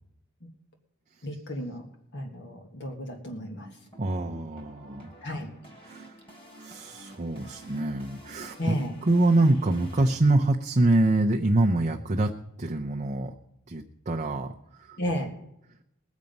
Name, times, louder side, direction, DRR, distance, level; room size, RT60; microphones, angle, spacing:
voice 1, 1.2-1.9 2.1-3.7 5.2-5.5 8.6-9.0 15.0-15.3, equal, 55° left, 3 dB, 1.7 m, -33 dB
sound 1, 3.3-10.1, right 1 dB, 25° left, 3.4 m, -50 dB
voice 2, 4.0-5.1 5.8-6.1 6.6-8.8 9.1-12.3 12.6-13.3 13.7-14.5 14.9-15.0, right 2 dB, 35° right, 1 dB, 0.7 m, -25 dB
21.0 x 7.3 x 5.3 m, 0.80 s
head